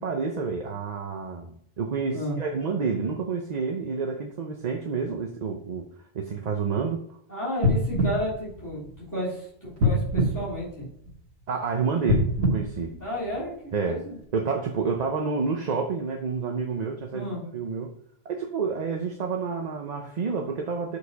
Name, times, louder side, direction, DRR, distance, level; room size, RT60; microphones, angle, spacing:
voice 1, 0.0-5.8 6.1-7.2 11.5-12.9 13.7-14.0 14.3-17.9 18.2-21.0, right 5 dB, 45° right, 3 dB, 0.7 m, -29 dB
voice 2, 7.3-10.9 13.0-14.2 17.1-17.4, equal, 15° left, -9 dB, 3.1 m, -32 dB
sound 1, 7.6-9.2 9.8-11.3 12.0-13.7 14.2-14.3, left 1 dB, 90° right, 1.6 m, -26 dB
6.6 x 5.0 x 4.0 m, 0.68 s
omnidirectional pair, 1.1 m